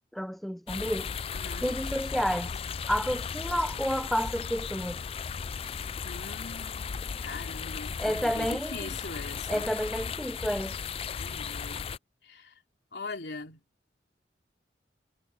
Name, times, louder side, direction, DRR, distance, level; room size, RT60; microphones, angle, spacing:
voice 1, 0.1-1.1 1.6-2.5 2.9-5.0 8.0-8.9 9.5-10.8, equal, ahead, 0.7 m, -30 dB
sound 1, 0.7-12.0, left 6 dB, 35° left, 0.3 m, -36 dB
voice 2, 1.3-1.7 6.0-9.7 11.2-11.9 12.2-12.5 12.9-13.6, left 3 dB, 70° left, 3.0 m, -42 dB
head